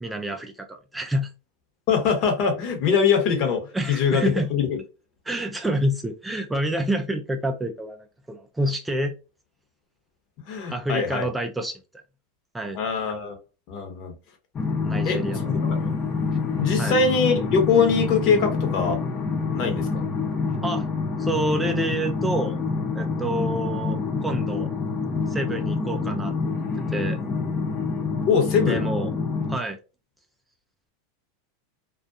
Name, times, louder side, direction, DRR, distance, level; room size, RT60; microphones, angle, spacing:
voice 1, 0.0-1.3 3.7-4.5 5.3-9.1 10.7-11.8 12.5-12.8 14.8-15.4 16.8-17.0 20.6-20.9 21.2-22.6 22.9-24.7 25.3-26.3 26.9-27.2 28.7-29.1 29.5-29.8, right 1 dB, 10° right, 0.4 m, -28 dB
voice 2, 1.9-4.8 10.4-11.3 12.7-13.3 13.7-14.1 15.0-15.9 16.6-19.0 19.5-20.0 28.3-28.8, left 5 dB, 55° left, 0.9 m, -23 dB
sound 1, 14.5-29.6, left 4 dB, 25° left, 0.7 m, -27 dB
2.4 x 2.3 x 2.6 m
hypercardioid pair, 110°, 0 cm